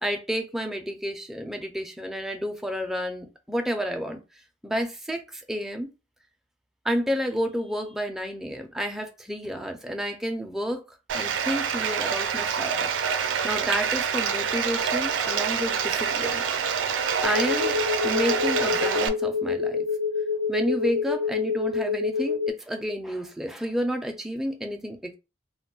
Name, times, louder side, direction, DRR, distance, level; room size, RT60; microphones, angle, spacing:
voice 1, 0.0-4.2 4.6-5.9 6.8-10.8 11.1-12.9 13.4-16.4 17.2-19.9 20.5-25.2, equal, ahead, 0.3 m, -30 dB
Bathtub (filling or washing), 11.1-19.1, right 6 dB, 80° right, 0.4 m, -26 dB
sound 1, 17.2-22.5, left 5 dB, 75° left, 0.4 m, -27 dB
2.2 x 2.1 x 3.7 m
head